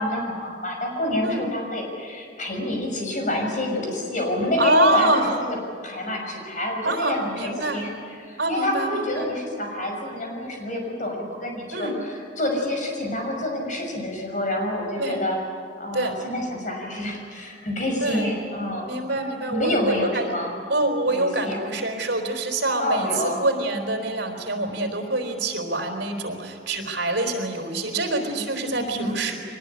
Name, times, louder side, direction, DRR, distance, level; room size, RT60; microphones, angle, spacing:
voice 1, 0.0-5.6 5.8-7.9 8.2-12.1 12.4-15.4 15.8-18.9 19.5-20.5 21.1-21.6 22.8-23.4 28.7-29.2, left 1 dB, 45° left, 1 dB, 6.0 m, -27 dB
voice 2, 4.6-5.3 6.8-7.8 8.4-9.3 11.7-12.0 15.0-15.2 15.9-16.1 18.0-18.3 18.9-20.3 20.7-29.4, right 2 dB, 70° right, 4 dB, 4.0 m, -25 dB
23.5 x 19.5 x 10.0 m, 2.1 s
head